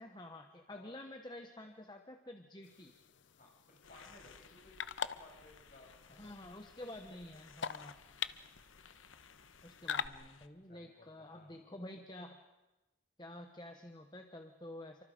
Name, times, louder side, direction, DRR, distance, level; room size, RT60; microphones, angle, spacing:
voice 1, 0.0-2.9 6.2-8.1 9.6-12.4 13.2-15.0, left 1 dB, 20° left, 5 dB, 1.1 m, -50 dB
sound 1, 2.6-10.1, left 7 dB, 65° left, 0.7 m, -44 dB
voice 2, 3.4-6.8 10.6-11.5, left 1 dB, 40° left, 0 dB, 6.5 m, -60 dB
sound 2, 3.8-10.5, left 5 dB, 85° left, 1.2 m, -60 dB
29.0 x 24.5 x 5.2 m, 1.1 s
head